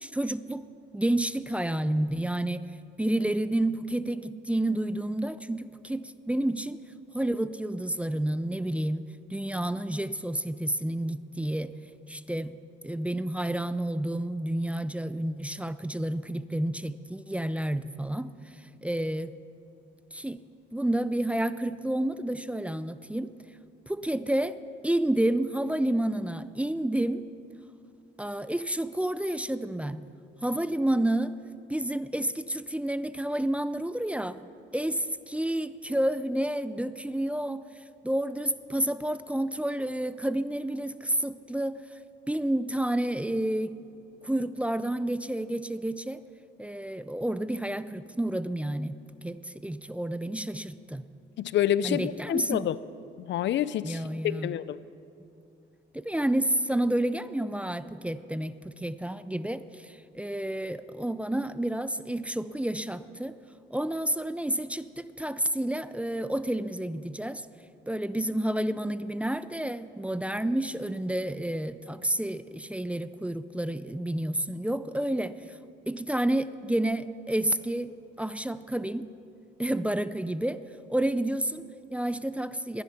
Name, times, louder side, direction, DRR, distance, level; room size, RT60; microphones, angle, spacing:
voice 1, 0.0-0.6 0.9-2.7 3.0-6.8 7.1-9.0 9.3-11.7 12.1-12.5 12.8-19.3 20.1-20.4 20.7-23.3 23.9-24.6 24.8-27.2 28.2-30.0 30.4-31.3 31.7-34.4 34.7-42.0 42.3-43.8 44.2-46.2 46.6-51.0 51.8-52.7 53.8-54.5 55.9-63.4 63.7-67.5 67.9-75.6 75.9-77.9 78.2-79.1 79.6-80.6 80.9-82.8, right 1 dB, 5° right, 14 dB, 0.5 m, -30 dB
voice 2, 51.4-52.8 53.2-54.8, left 11 dB, 65° left, 17 dB, 0.5 m, -28 dB
19.5 x 10.5 x 5.9 m, 2.5 s
cardioid pair, 90°, 20 cm